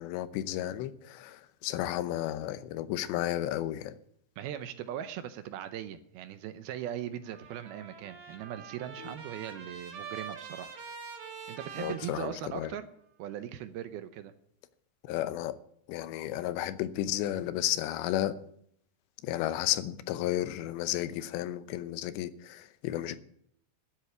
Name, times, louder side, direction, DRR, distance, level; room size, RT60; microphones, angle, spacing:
voice 1, 0.0-3.9 9.0-9.1 11.8-12.7 15.0-15.6 15.9-18.3 19.2-23.2, left 13 dB, 90° left, 3.1 m, -33 dB
voice 2, 4.4-10.7 11.5-12.9 13.2-14.3, right 10 dB, 75° right, 2.4 m, -39 dB
Trumpet, 7.2-12.9, right 6 dB, 60° right, 4.2 m, -45 dB
12.5 x 8.2 x 9.9 m
omnidirectional pair, 4.9 m